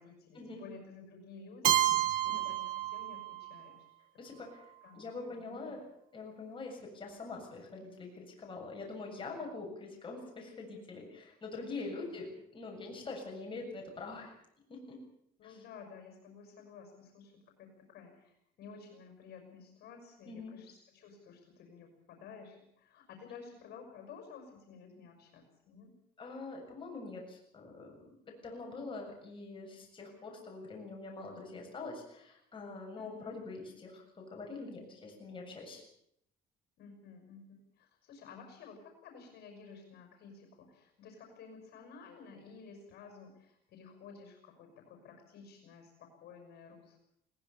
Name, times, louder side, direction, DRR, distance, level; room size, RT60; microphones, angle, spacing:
voice 1, 0.0-3.8 4.3-4.4 4.8-5.8 11.6-11.9 15.4-25.9 33.0-33.4 36.8-47.0, left 5 dB, 70° left, 4 dB, 6.0 m, -53 dB
Keyboard (musical), 1.6-3.6, right 13 dB, 55° right, 1.7 m, -30 dB
voice 2, 4.2-4.6 4.9-5.8 6.1-12.3 12.5-14.3 14.7-15.0 15.4-15.5 20.3-20.6 26.2-35.8, left 3 dB, 30° left, 0 dB, 7.3 m, -44 dB
21.5 x 19.0 x 7.1 m, 0.73 s
cardioid pair, 110°, 17 cm